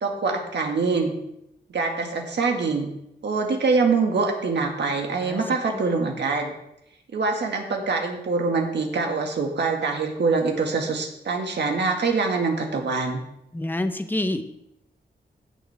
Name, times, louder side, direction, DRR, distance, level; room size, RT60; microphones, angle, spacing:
voice 1, 0.0-1.2 1.7-2.9 3.2-6.5 7.1-13.2, right 4 dB, 80° right, 2 dB, 1.8 m, -24 dB
voice 2, 13.5-14.4, left 1 dB, 10° left, 8 dB, 0.8 m, -27 dB
15.5 x 6.8 x 3.5 m, 0.81 s
wide cardioid pair, 125°, 18 cm